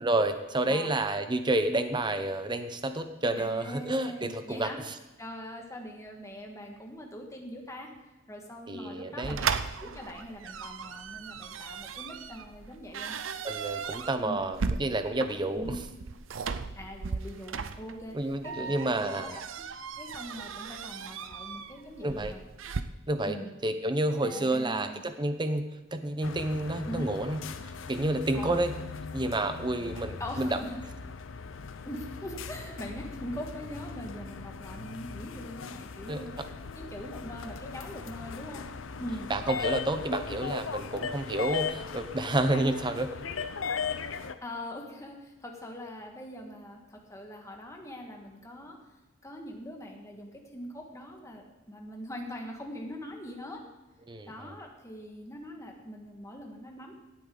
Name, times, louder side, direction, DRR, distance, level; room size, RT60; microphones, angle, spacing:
voice 1, 0.0-4.9 8.7-9.4 13.4-15.7 18.1-19.4 22.0-22.3 23.1-23.4 23.6-25.6 25.9-27.4 27.9-28.7 29.1-30.6 36.1-36.2 39.3-43.1 54.1-54.5, right 2 dB, 25° right, 9 dB, 0.9 m, -29 dB
voice 2, 3.3-4.8 5.2-7.9 8.3-9.5 9.8-13.1 14.2-14.4 15.5-15.8 16.8-19.7 20.0-22.4 23.2-23.5 24.2-25.0 26.8-27.1 28.3-28.6 30.2-30.8 31.8-36.4 36.7-38.6 39.0-39.3 44.4-48.8 49.2-53.6 54.3-56.9, equal, 15° left, 2 dB, 1.7 m, -42 dB
sound 1, 9.2-22.8, right 5 dB, 90° right, 0.6 m, -37 dB
sound 2, 26.2-44.3, left 5 dB, 85° left, 0.7 m, -38 dB
17.0 x 8.6 x 4.0 m, 1.1 s
head